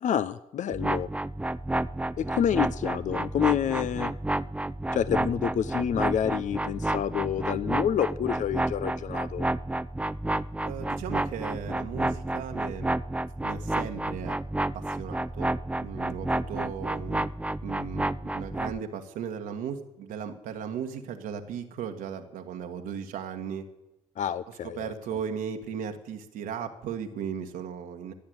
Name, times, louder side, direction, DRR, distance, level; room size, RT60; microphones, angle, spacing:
voice 1, 0.0-1.1 2.2-4.1 4.9-9.5 24.2-24.9, left 9 dB, 60° left, 15 dB, 0.6 m, -28 dB
sound 1, 0.7-18.8, right 1 dB, 10° right, 0.6 m, -30 dB
voice 2, 10.6-13.0 13.4-14.4 14.7-15.5 15.8-17.3 17.6-23.6 24.6-28.1, right 7 dB, 75° right, 5 dB, 1.4 m, -36 dB
15.5 x 8.7 x 8.0 m, 0.89 s
hypercardioid pair, 45°, 15 cm